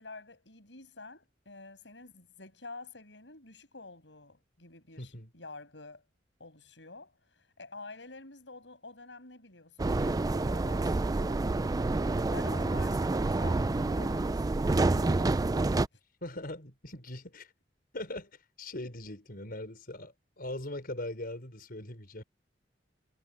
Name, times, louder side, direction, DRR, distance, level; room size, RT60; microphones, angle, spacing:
voice 1, 0.0-6.0 6.4-11.4 12.0-15.5, left 3 dB, 80° left, 7.4 m, -49 dB
voice 2, 5.0-5.3 16.2-17.5 17.9-18.3 18.6-22.2, left 1 dB, 55° left, 5.3 m, -40 dB
sound 1, 9.8-15.9, right 2 dB, 20° right, 0.4 m, -28 dB
head